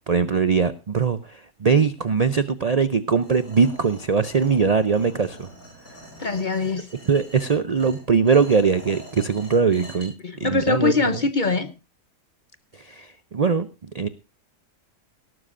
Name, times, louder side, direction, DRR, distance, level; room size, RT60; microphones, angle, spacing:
voice 1, 0.1-5.5 5.9-6.0 7.1-10.1 10.4-11.2 12.7-14.1, right 5 dB, 50° right, 12 dB, 0.4 m, -21 dB
sound 1, 3.2-10.1, equal, 80° left, 7.0 m, -44 dB
voice 2, 6.2-6.9 10.2-11.7, left 4 dB, 40° left, 12 dB, 0.8 m, -23 dB
18.5 x 12.5 x 2.5 m, 0.30 s
omnidirectional pair, 1.5 m